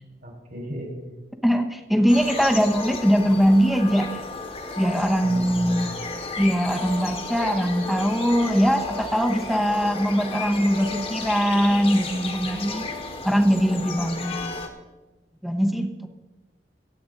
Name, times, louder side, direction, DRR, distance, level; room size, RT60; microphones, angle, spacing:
voice 1, 0.2-0.9 5.2-5.9, equal, 55° right, 0 dB, 3.9 m, -35 dB
voice 2, 1.4-4.2 4.8-5.9 6.4-12.9 13.2-14.4 15.4-16.1, equal, ahead, 5 dB, 0.9 m, -21 dB
sound 1, 2.1-14.7, left 3 dB, 35° left, 1.4 m, -33 dB
25.0 x 8.6 x 3.9 m, 1.2 s
head